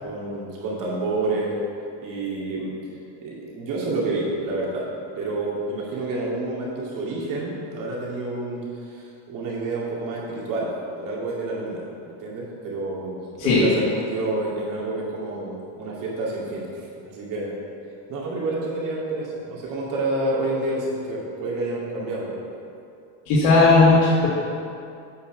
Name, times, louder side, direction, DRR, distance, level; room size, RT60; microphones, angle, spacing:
voice 1, 0.0-1.6 2.0-2.7 3.1-4.9 5.2-10.7 11.0-11.8 12.2-17.6 18.1-22.4, right 2 dB, 40° right, -4 dB, 2.3 m, -29 dB
voice 2, 23.3-24.3, left 3 dB, 60° left, -9 dB, 2.1 m, -16 dB
8.3 x 5.5 x 6.1 m, 2.4 s
cardioid pair, 160°, 49 cm